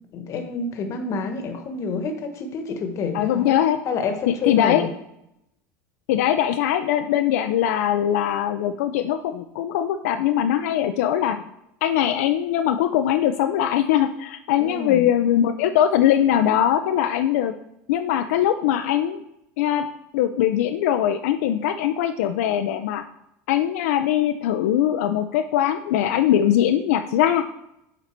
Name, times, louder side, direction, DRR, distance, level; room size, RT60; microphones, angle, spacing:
voice 1, 0.1-3.5 3.8-4.9 14.6-15.0, left 4 dB, 40° left, 6 dB, 1.1 m, -28 dB
voice 2, 3.1-3.8 4.5-4.9 6.1-11.4 11.8-17.5 17.9-19.2 19.6-19.9 20.1-23.0 23.5-27.4, left 10 dB, 85° left, 7 dB, 0.4 m, -21 dB
7.2 x 4.0 x 4.4 m, 0.81 s
supercardioid pair, 120°, 8 cm